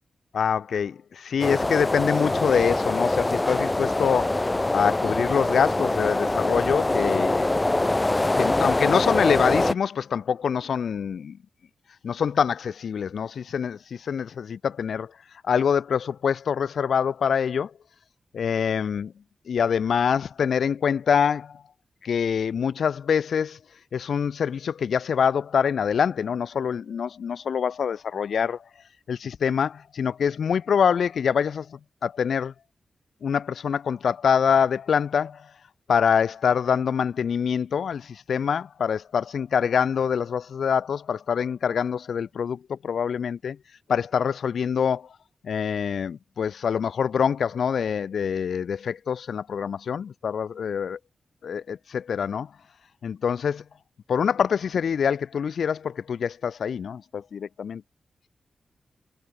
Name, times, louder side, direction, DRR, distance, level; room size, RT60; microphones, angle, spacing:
voice 1, 0.3-4.5 4.7-7.5 8.4-11.4 12.0-15.1 15.5-17.7 18.3-19.1 19.5-21.6 22.0-23.6 23.9-28.6 29.1-32.5 33.2-35.5 35.9-43.6 43.9-45.1 45.4-51.0 51.4-52.5 53.0-53.6 54.1-57.8, left 7 dB, 85° left, 0.8 m, -25 dB
sound 1, 1.4-9.7, left 2 dB, 20° left, 0.3 m, -24 dB
wide cardioid pair, 105°, 0 cm